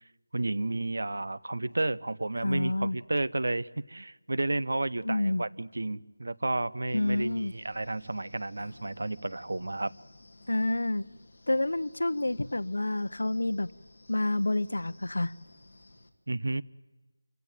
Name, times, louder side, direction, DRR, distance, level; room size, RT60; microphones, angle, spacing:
voice 1, 0.3-9.9 16.3-16.6, right 2 dB, 55° right, 17 dB, 0.7 m, -32 dB
voice 2, 2.4-3.0 5.0-5.4 6.9-7.5 10.5-11.0 11.5-13.7 14.1-15.3, left 2 dB, 80° left, 16 dB, 0.9 m, -28 dB
Wind, 6.9-16.1, left 2 dB, 35° left, 2.0 m, -56 dB
26.5 x 16.5 x 9.0 m, 1.2 s
figure-of-eight pair, 180°, 0 cm